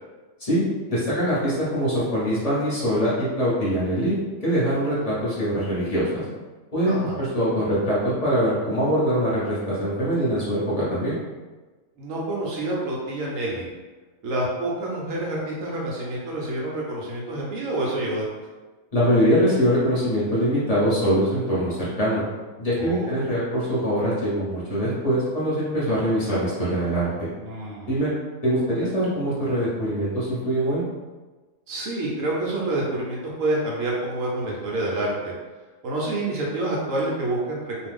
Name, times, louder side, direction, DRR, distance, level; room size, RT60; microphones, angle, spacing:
voice 1, 0.4-4.2 4.4-6.2 6.7-11.2 18.9-22.2 22.6-27.3 27.9-28.1 28.4-30.8, equal, 30° left, -9 dB, 0.9 m, -23 dB
voice 2, 6.8-7.2 12.0-13.7 14.2-18.2 22.8-23.3 27.4-28.0 31.7-35.3 35.8-37.9, right 2 dB, 65° right, -4 dB, 1.0 m, -28 dB
2.6 x 2.3 x 3.4 m, 1.3 s
omnidirectional pair, 1.6 m